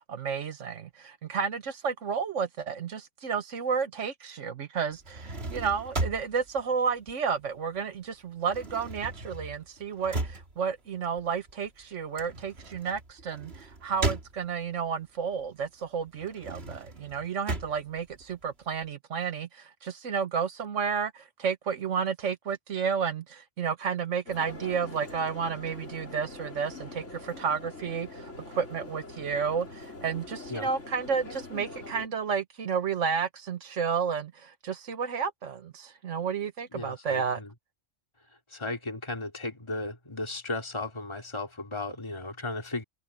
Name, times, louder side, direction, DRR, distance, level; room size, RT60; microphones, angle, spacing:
voice 1, 0.1-37.4, right 6 dB, 80° right, 1.6 m, -31 dB
sound 1, 4.9-7.8 8.1-14.9 15.3-18.9, right 2 dB, 55° right, 2.8 m, -37 dB
sound 2, 24.3-32.1, left 2 dB, 80° left, 4.5 m, -43 dB
voice 2, 36.7-37.5 38.5-42.8, left 2 dB, 25° left, 2.8 m, -35 dB
omnidirectional pair, 1.2 m